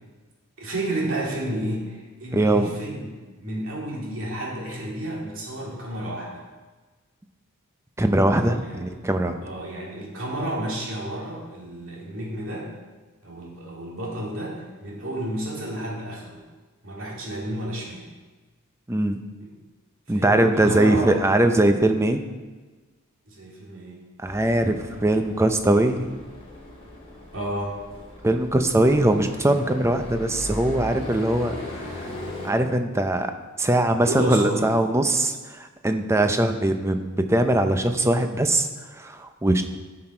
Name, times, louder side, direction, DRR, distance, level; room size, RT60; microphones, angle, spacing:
voice 1, 0.6-6.4 8.5-8.9 9.4-12.7 13.2-16.4 16.8-18.1 19.4-19.5 20.1-21.2 23.3-24.0 27.3-27.8 34.1-34.7 36.4-36.6, right 1 dB, 60° right, -3 dB, 2.5 m, -31 dB
voice 2, 2.3-2.7 8.0-9.4 18.9-19.2 20.1-22.2 24.2-26.1 28.2-32.1 32.4-33.3 33.6-39.6, right 1 dB, 10° right, 7 dB, 0.5 m, -21 dB
sound 1, 24.3-32.5, left 1 dB, 25° left, 2.0 m, -38 dB
11.0 x 6.1 x 4.4 m, 1.3 s
head